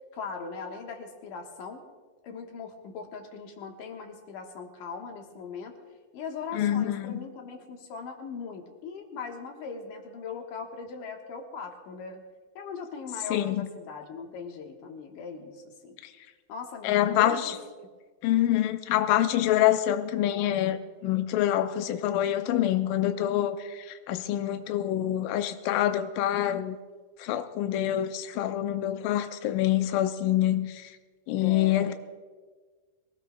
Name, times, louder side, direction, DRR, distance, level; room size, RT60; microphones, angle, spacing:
voice 1, 0.1-1.8 2.2-5.7 6.1-12.2 12.6-16.0 16.5-17.5 31.4-31.9, left 5 dB, 65° left, 2 dB, 2.7 m, -40 dB
voice 2, 6.5-7.2 13.3-13.7 16.0-16.1 16.8-17.6 18.2-26.8 27.2-30.9 31.3-31.9, left 12 dB, 85° left, 8 dB, 1.9 m, -26 dB
23.0 x 18.5 x 2.3 m, 1.5 s
omnidirectional pair, 4.5 m